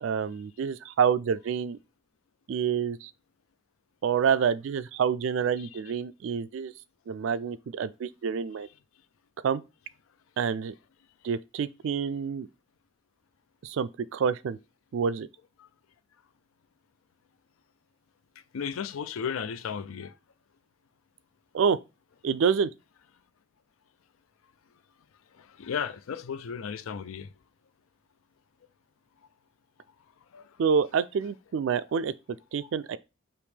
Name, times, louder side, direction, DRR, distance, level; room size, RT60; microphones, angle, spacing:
voice 1, 0.0-1.8 2.5-3.1 4.0-6.7 7.1-8.7 9.4-9.6 10.4-10.7 11.2-12.5 13.6-14.6 14.9-15.3 21.5-21.8 22.2-22.7 30.6-32.1 32.5-33.0, right 6 dB, 70° right, 0.3 m, -27 dB
voice 2, 18.5-20.2 25.4-27.3 30.3-30.5, left 7 dB, 80° left, 0.4 m, -34 dB
5.1 x 3.0 x 3.2 m
head